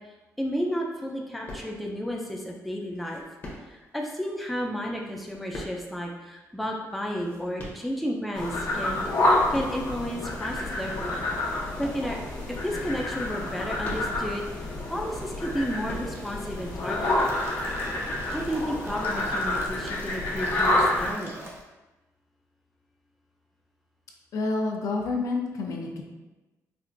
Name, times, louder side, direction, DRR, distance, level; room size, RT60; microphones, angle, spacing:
voice 1, 0.4-3.2 3.6-9.1 9.5-11.2 11.5-12.2 12.6-14.5 14.9-17.3 18.3-21.3, equal, ahead, -1 dB, 0.3 m, -32 dB
sound 1, 1.5-2.1 2.9-4.0 5.0-6.2 6.9-8.3 8.8-9.9 10.5-10.6 11.2-12.5 13.3-14.4 15.3-16.5 17.3-17.6, left 1 dB, 30° left, 0.7 m, -42 dB
sound 2, 8.3-21.1, left 1 dB, 80° left, 1.0 m, -28 dB
Water tap faucet / Sink (filling or washing), 16.1-21.6, right 1 dB, 40° right, 0.6 m, -43 dB
voice 2, 24.3-26.0, left 3 dB, 65° left, 1 dB, 0.5 m, -28 dB
4.4 x 2.4 x 2.5 m, 1.1 s
wide cardioid pair, 170°, 6 cm